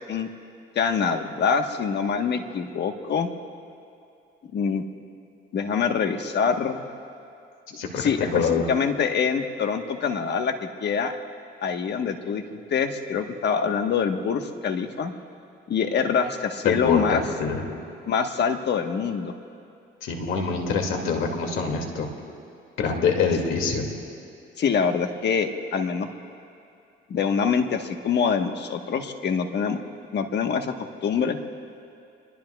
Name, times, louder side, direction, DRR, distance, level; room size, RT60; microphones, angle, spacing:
voice 1, 0.7-3.3 4.5-4.8 5.5-6.9 8.0-11.1 11.6-15.1 15.7-17.2 18.1-19.3 24.6-26.1 27.1-29.8 30.1-30.7 31.0-31.4, left 6 dB, 60° left, 5 dB, 1.3 m, -25 dB
voice 2, 7.7-8.7 16.6-17.6 20.0-22.1 22.8-23.9, left 5 dB, 85° left, 3 dB, 2.3 m, -25 dB
26.5 x 21.5 x 2.4 m, 2.6 s
cardioid pair, 90°, 20 cm